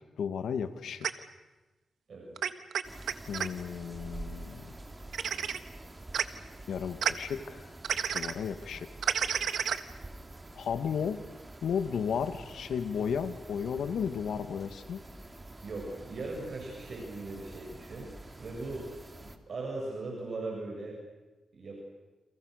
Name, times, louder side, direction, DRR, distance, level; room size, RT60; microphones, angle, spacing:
voice 1, 0.2-1.1 3.3-4.7 6.7-7.7 8.1-8.9 10.5-11.2 11.6-15.0, left 7 dB, 85° left, 9 dB, 2.0 m, -33 dB
sound 1, 1.0-1.1 2.4-3.5 5.1-5.6 6.1-6.2 7.0-7.1 7.8-8.3 9.0-9.8, right 8 dB, 80° right, 1.4 m, -30 dB
sound 2, 2.8-19.4, right 2 dB, 20° right, 2.8 m, -47 dB
voice 2, 15.6-18.1 18.4-18.9 19.2-21.0 21.5-21.8, right 2 dB, 60° right, -1 dB, 7.5 m, -39 dB
30.0 x 28.0 x 6.7 m, 1.1 s
cardioid pair, 85°, 0 cm